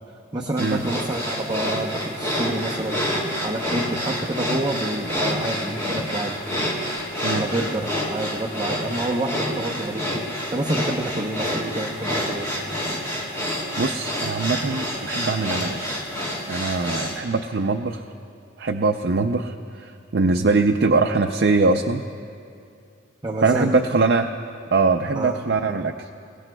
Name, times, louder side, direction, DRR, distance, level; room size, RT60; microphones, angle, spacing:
voice 1, 0.3-3.0 3.4-6.4 7.3-10.2 10.5-12.5 23.2-23.7 25.1-25.4, right 1 dB, 20° right, -2 dB, 0.7 m, -28 dB
sound 1, 0.6-17.2, equal, 15° left, 2.5 m, -28 dB
voice 2, 13.8-16.0 16.5-18.0 18.6-22.0 23.4-24.3 24.7-26.1, right 3 dB, 55° right, 4 dB, 0.5 m, -22 dB
28.0 x 17.0 x 2.3 m, 2.4 s
head